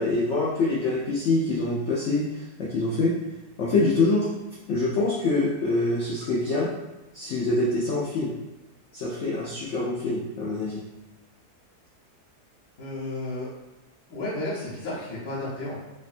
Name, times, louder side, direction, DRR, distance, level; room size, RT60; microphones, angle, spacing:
voice 1, 0.0-3.1 3.6-4.3 4.7-6.7 7.1-8.3 8.9-10.8, left 2 dB, 85° left, -5 dB, 0.6 m, -25 dB
voice 2, 12.8-13.5 14.1-15.8, left 2 dB, 60° left, -10 dB, 1.2 m, -32 dB
3.3 x 2.1 x 2.4 m, 1.0 s
omnidirectional pair, 1.8 m